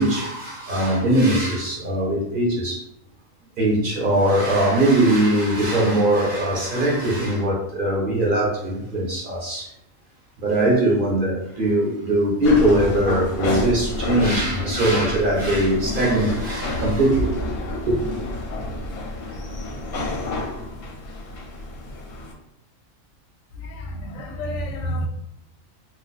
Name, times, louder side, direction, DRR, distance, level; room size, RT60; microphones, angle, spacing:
voice 1, 0.0-2.8 3.6-9.7 10.4-17.5 17.9-18.0, right 1 dB, 50° right, 0.8 m, -21 dB
sound 1, 12.4-22.3, left 2 dB, 60° left, 0.7 m, -29 dB
voice 2, 23.6-25.1, equal, 85° left, 1.0 m, -29 dB
2.5 x 2.2 x 3.8 m
omnidirectional pair, 1.4 m